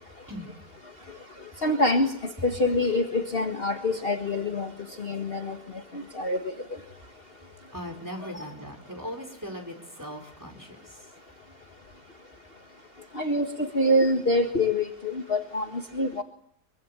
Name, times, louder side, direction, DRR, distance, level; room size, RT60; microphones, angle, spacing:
voice 1, 1.6-4.7 5.0-5.6 5.9-6.5 13.1-15.7 15.9-16.2, left 1 dB, 35° left, 4 dB, 1.9 m, -25 dB
voice 2, 7.7-11.0, equal, 10° right, 4 dB, 4.7 m, -39 dB
24.5 x 24.0 x 8.9 m, 0.67 s
omnidirectional pair, 1.7 m